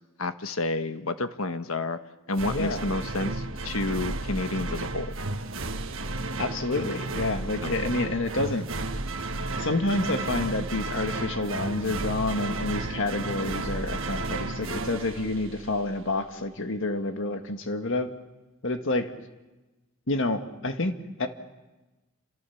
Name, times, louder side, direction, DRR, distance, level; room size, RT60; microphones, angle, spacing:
voice 1, 0.2-2.0 2.3-5.1 7.6-7.8, left 2 dB, 85° left, 9 dB, 1.4 m, -30 dB
sound 1, 2.3-16.0, right 2 dB, 65° right, 1.5 m, -33 dB
voice 2, 2.5-2.9 6.4-8.7 9.6-18.1 18.6-19.1 20.1-21.3, left 2 dB, 65° left, 7 dB, 1.8 m, -28 dB
29.0 x 26.5 x 7.2 m, 1.1 s
head